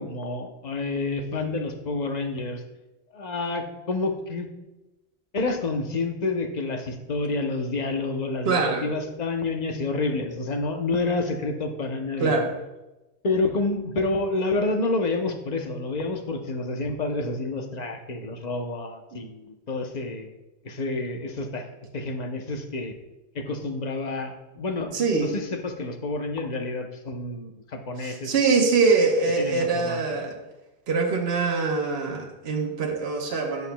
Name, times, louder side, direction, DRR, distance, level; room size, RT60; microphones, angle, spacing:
voice 1, 0.0-2.6 3.1-4.5 5.3-12.4 13.2-20.3 20.6-21.6 21.9-22.9 23.3-28.3 29.4-30.1, left 3 dB, 40° left, 5 dB, 0.9 m, -29 dB
voice 2, 8.5-8.9 12.2-12.6 24.9-25.3 28.0-30.4 30.9-33.7, right 4 dB, 65° right, 1 dB, 1.2 m, -23 dB
10.5 x 8.0 x 2.2 m, 1.0 s
omnidirectional pair, 1.1 m